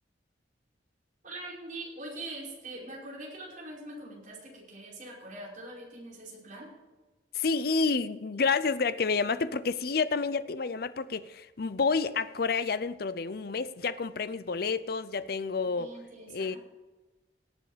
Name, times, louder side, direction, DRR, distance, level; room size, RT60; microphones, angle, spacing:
voice 1, 1.2-6.7 15.7-16.6, right 2 dB, 50° right, -4 dB, 5.2 m, -43 dB
voice 2, 7.3-15.9 16.3-16.6, left 4 dB, 60° left, 14 dB, 0.6 m, -29 dB
18.0 x 7.6 x 5.0 m, 1.2 s
head